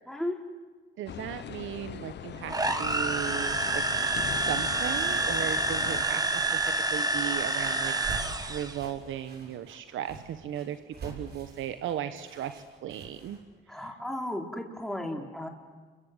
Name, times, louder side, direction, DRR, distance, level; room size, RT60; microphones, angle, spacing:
voice 1, 0.1-0.4 13.7-15.5, left 1 dB, ahead, 1 dB, 4.0 m, -34 dB
voice 2, 1.0-3.8 4.3-13.4, right 10 dB, 80° right, 10 dB, 1.1 m, -36 dB
sound 1, 1.1-6.0, left 9 dB, 60° left, 1.1 m, -41 dB
sound 2, 2.5-8.8, right 2 dB, 20° right, 2.0 m, -28 dB
sound 3, 7.8-13.4, right 4 dB, 55° right, 7.0 m, -45 dB
29.0 x 23.5 x 8.0 m, 1.4 s
cardioid pair, 90°, 20 cm